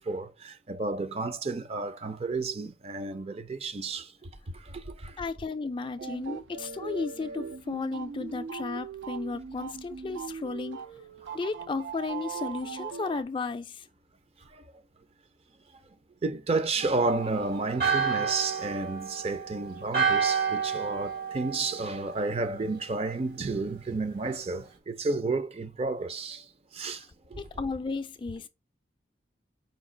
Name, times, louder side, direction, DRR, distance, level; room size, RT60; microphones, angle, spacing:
voice 1, 0.1-4.1 4.9-5.2 11.2-11.4 16.2-26.4 26.7-27.0 27.3-27.4, right 3 dB, 35° right, 0.5 m, -31 dB
voice 2, 5.2-10.8 11.3-13.9 27.0-27.1 27.4-28.5, left 4 dB, 25° left, 0.3 m, -34 dB
sound 1, 6.0-13.2, right 6 dB, 90° right, 0.4 m, -39 dB
Church bell, 16.8-22.5, right 6 dB, 55° right, 1.0 m, -30 dB
5.1 x 2.4 x 3.7 m
head